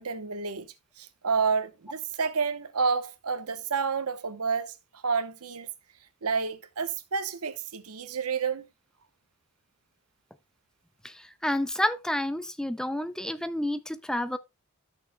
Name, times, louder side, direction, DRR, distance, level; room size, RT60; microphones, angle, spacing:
voice 1, 0.0-4.7 5.0-5.7 6.2-8.7, right 5 dB, 85° right, 1.0 m, -29 dB
voice 2, 11.0-14.4, left 1 dB, 5° left, 0.4 m, -30 dB
13.5 x 6.5 x 2.2 m
head